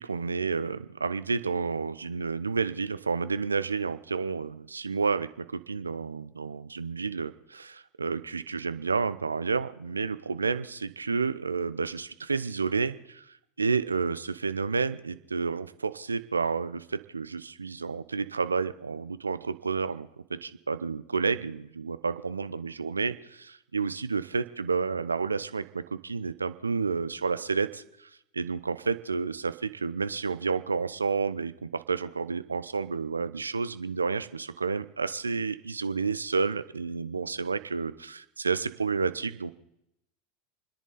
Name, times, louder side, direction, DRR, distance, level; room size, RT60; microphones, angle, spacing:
voice 1, 0.0-13.3 13.6-39.5, right 4 dB, 90° right, 13 dB, 0.8 m, -30 dB
29.0 x 10.5 x 4.2 m, 0.80 s
hypercardioid pair, 85°, 0 cm